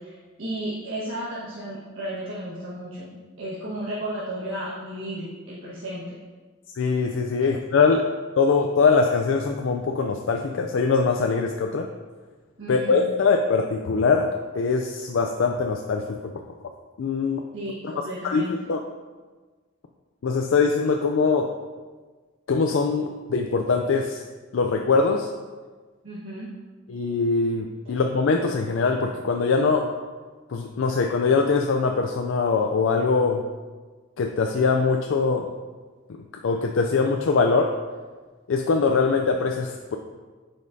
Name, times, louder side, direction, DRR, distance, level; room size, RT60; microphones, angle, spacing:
voice 1, 0.0-6.0 12.6-13.0 17.5-18.5 26.0-26.5, right 1 dB, 75° right, -9 dB, 1.5 m, -34 dB
voice 2, 6.8-8.0 8.4-11.9 12.7-16.2 17.0-17.4 18.2-18.8 20.2-21.5 22.5-24.2 24.5-25.3 26.9-29.9 30.5-33.4 34.2-35.5 36.4-37.7 38.5-40.0, left 4 dB, 75° left, 3 dB, 0.4 m, -22 dB
9.3 x 5.2 x 2.7 m, 1.4 s
head